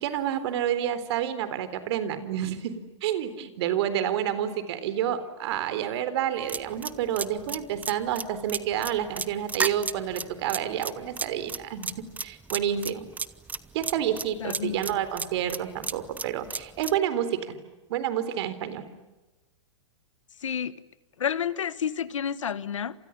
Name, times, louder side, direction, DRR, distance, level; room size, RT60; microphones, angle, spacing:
voice 1, 0.0-11.9 12.2-13.1 13.7-17.6 17.9-18.8, right 10 dB, 60° right, 13 dB, 3.8 m, -29 dB
sound 1, 6.5-17.0, right 4 dB, 10° right, 1.0 m, -32 dB
voice 2, 14.4-15.0 20.4-20.7 21.2-22.9, left 8 dB, 85° left, 17 dB, 1.4 m, -30 dB
29.5 x 27.5 x 7.3 m, 1.1 s
hypercardioid pair, 125°, 16 cm